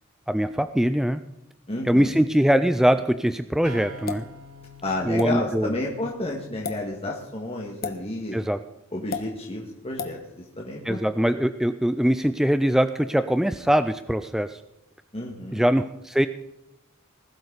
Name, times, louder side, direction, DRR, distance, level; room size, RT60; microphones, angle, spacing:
voice 1, 0.3-1.2 1.8-4.2 5.1-5.8 8.3-8.6 10.9-14.6 15.5-16.3, equal, ahead, 10 dB, 0.4 m, -22 dB
voice 2, 1.7-2.2 4.8-8.4 8.9-11.0 15.1-15.6, left 1 dB, 30° left, -1 dB, 1.9 m, -31 dB
sound 1, 3.6-7.3, equal, 90° right, 1.5 m, -45 dB
sound 2, 4.1-4.3 5.2-5.3 6.5-6.8 7.8-8.0 9.1-9.3 10.0-10.2, left 5 dB, 50° left, 1.4 m, -31 dB
20.0 x 12.5 x 4.1 m, 0.87 s
head